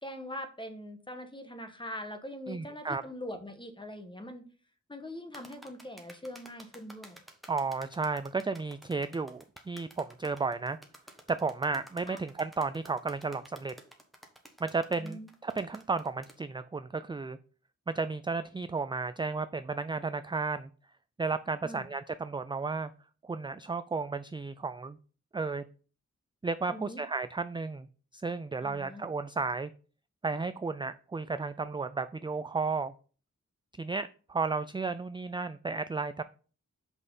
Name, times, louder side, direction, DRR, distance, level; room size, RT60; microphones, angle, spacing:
voice 1, 0.0-4.4 4.9-7.2 12.1-12.2 15.0-15.3 21.6-21.9 26.7-27.0 28.6-29.1, left 1 dB, 15° left, 7 dB, 1.2 m, -42 dB
voice 2, 2.5-3.0 7.5-10.8 11.3-13.7 14.6-17.4 17.9-20.7 21.2-22.9 23.2-25.0 25.3-25.6 26.4-27.9 28.1-29.7 30.2-32.9 33.8-36.2, right 4 dB, 15° right, 12 dB, 0.3 m, -33 dB
sound 1, 5.3-16.4, equal, ahead, 1.4 m, -52 dB
6.2 x 5.4 x 5.4 m, 0.39 s
wide cardioid pair, 100°, 30 cm